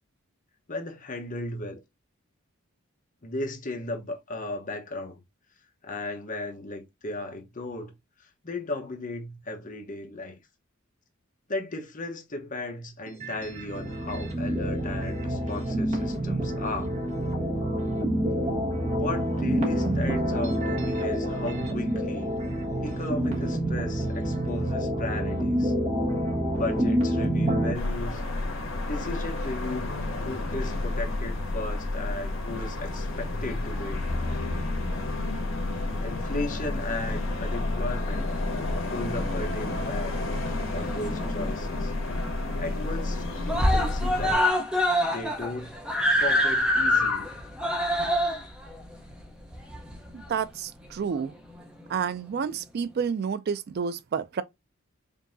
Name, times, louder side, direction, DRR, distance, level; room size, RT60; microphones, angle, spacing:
voice 1, 0.7-1.8 3.2-5.2 5.8-7.9 8.2-10.4 11.5-16.9 18.3-18.4 19.0-22.3 22.8-25.7 26.5-28.2 28.8-34.1 36.0-38.2 38.9-40.3 40.7-41.9 42.6-44.5 45.1-45.8 46.2-47.3, left 2 dB, 40° left, 0.9 m, -35 dB
sound 1, 13.1-27.7, right 1 dB, 35° right, 1.3 m, -27 dB
sound 2, 27.7-44.4, left 2 dB, 70° left, 1.5 m, -30 dB
Screaming, 40.6-41.5 41.8-41.9 42.3-42.4 42.7-43.1 43.5-50.3 51.1-51.2, left 1 dB, 5° right, 0.7 m, -25 dB
voice 2, 50.1-51.3 51.9-54.4, right 6 dB, 50° right, 0.3 m, -30 dB
5.2 x 2.7 x 2.6 m
head